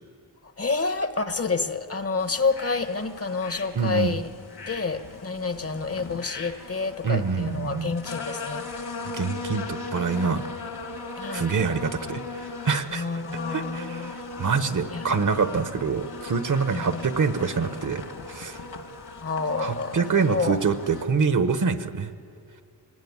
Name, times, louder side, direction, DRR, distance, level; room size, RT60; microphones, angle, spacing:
voice 1, 0.6-4.3 4.7-8.7 11.2-11.5 12.9-14.1 14.9-15.6 16.7-17.0 19.2-20.6, left 4 dB, 35° left, 10 dB, 1.0 m, -29 dB
sound 1, 2.2-21.0, left 3 dB, 65° left, 2.0 m, -38 dB
voice 2, 3.7-4.1 7.0-7.9 9.0-10.4 11.3-13.0 13.3-18.0 18.3-18.6 19.6-22.1, right 5 dB, 45° right, 10 dB, 1.0 m, -26 dB
25.0 x 18.5 x 9.6 m, 2.4 s
wide cardioid pair, 135°, 42 cm